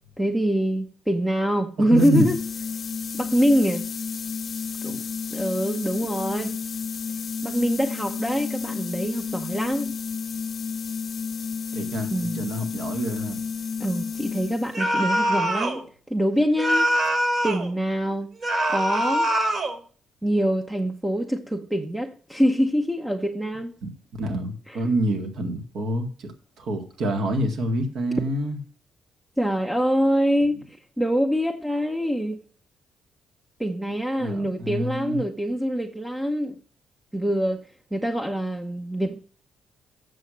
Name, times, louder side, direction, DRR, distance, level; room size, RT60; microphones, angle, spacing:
voice 1, 0.2-2.4 3.2-3.9 4.8-5.0 5.3-6.5 7.4-9.9 12.1-12.8 13.8-16.9 17.4-18.3 18.7-19.3 20.2-23.7 24.7-24.8 29.4-30.6 31.0-32.4 33.6-36.6 37.1-37.6 37.9-39.2, equal, 5° right, 1.0 m, -24 dB
sound 1, 1.9-14.9, left 6 dB, 45° left, 0.7 m, -32 dB
voice 2, 1.9-2.3 11.7-13.4 23.8-23.9 24.2-26.3 26.6-28.6 34.2-35.2, right 1 dB, 70° right, 1.9 m, -27 dB
sound 2, 14.7-15.8 16.6-17.7 18.4-19.8, right 1 dB, 45° right, 2.1 m, -23 dB
7.6 x 6.4 x 6.3 m
cardioid pair, 90°, 0 cm